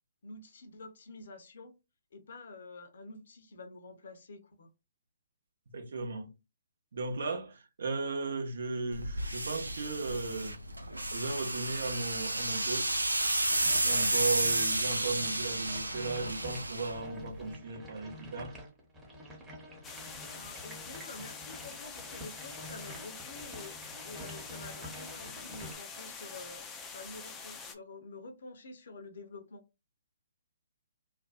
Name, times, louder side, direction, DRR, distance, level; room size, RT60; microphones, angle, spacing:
voice 1, 0.2-1.7 2.1-4.7 20.2-29.6, left 3 dB, 60° left, 0.6 m, -48 dB
voice 2, 5.7-6.3 6.9-10.6 11.1-12.9 13.2-18.6, right 3 dB, 60° right, 0.8 m, -36 dB
sound 1, 8.9-17.5, right 1 dB, 90° right, 0.4 m, -32 dB
sound 2, 13.5-25.8, equal, 10° right, 0.9 m, -48 dB
sound 3, 19.8-27.7, left 5 dB, 15° left, 0.4 m, -45 dB
2.5 x 2.1 x 2.4 m
figure-of-eight pair, 130°, 0 cm